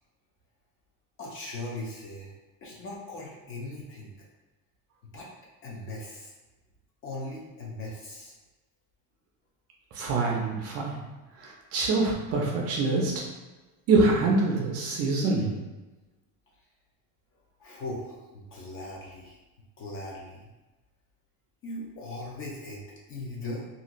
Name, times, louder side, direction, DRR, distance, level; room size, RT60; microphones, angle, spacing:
voice 1, 1.2-2.3 2.6-4.1 5.1-5.3 5.6-6.3 7.0-8.3 17.6-19.4 19.8-20.5 21.6-22.8 23.1-23.6, left 2 dB, 35° left, -3 dB, 0.4 m, -39 dB
voice 2, 9.9-11.0 11.4-13.2 13.9-15.5, right 3 dB, 40° right, -1 dB, 0.4 m, -25 dB
2.5 x 2.5 x 2.9 m, 1.1 s
cardioid pair, 175°, 40 cm